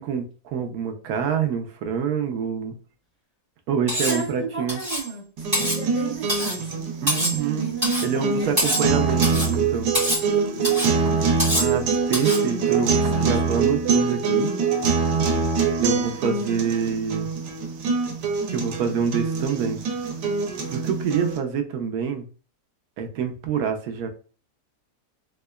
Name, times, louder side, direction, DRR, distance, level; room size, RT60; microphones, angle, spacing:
voice 1, 0.0-2.7 3.7-4.8 7.0-7.7 8.0-9.9 11.5-11.8 12.1-14.5 15.8-17.3 18.5-19.8 20.7-22.3 23.0-24.1, right 7 dB, 70° right, 1.1 m, -26 dB
Cutlery silverware, 3.9-4.2 4.7-5.1 5.5-5.8 6.3-6.6 7.1-7.4 7.8-8.1 8.6-8.9 9.2-9.5 9.9-10.3 10.6-10.9 11.4-11.7 12.1-12.4, equal, 15° right, 1.8 m, -25 dB
voice 2, 4.0-5.3 5.5-9.9 10.2-11.9 12.5-13.3, right 4 dB, 45° right, 0.4 m, -35 dB
sound 1, 5.4-21.4, right 5 dB, 90° right, 1.3 m, -24 dB
3.7 x 3.2 x 2.3 m
omnidirectional pair, 1.8 m